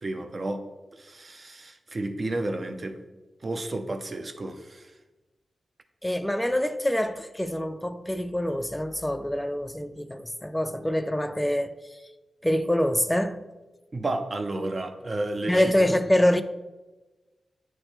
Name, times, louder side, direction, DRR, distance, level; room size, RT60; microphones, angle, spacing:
voice 1, 0.0-0.6 0.9-3.0 3.4-4.9 13.9-15.7, right 2 dB, 40° right, 0.7 m, -32 dB
voice 2, 6.0-11.8 12.4-13.5 15.5-16.4, left 1 dB, 10° left, 0.4 m, -25 dB
8.8 x 3.2 x 4.4 m
cardioid pair, 70°, 0 cm